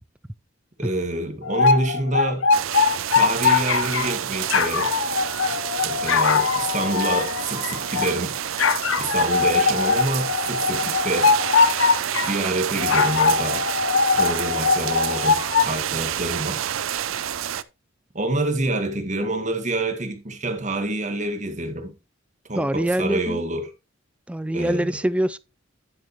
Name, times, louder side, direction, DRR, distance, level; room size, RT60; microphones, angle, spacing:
voice 1, 0.8-2.5 3.1-4.9 5.8-8.4 9.0-11.3 12.2-13.7 14.1-16.6 18.1-21.9 22.5-23.7 24.5-25.0, right 2 dB, 40° right, 1.8 m, -27 dB
sound 1, 1.4-4.2 4.5-8.1 8.6-12.3 12.8-15.7, left 5 dB, 75° left, 0.8 m, -21 dB
sound 2, 2.5-17.6, right 10 dB, 90° right, 0.5 m, -29 dB
voice 2, 22.6-23.4 24.3-25.4, right 1 dB, 5° right, 0.4 m, -24 dB
10.0 x 8.5 x 3.1 m
head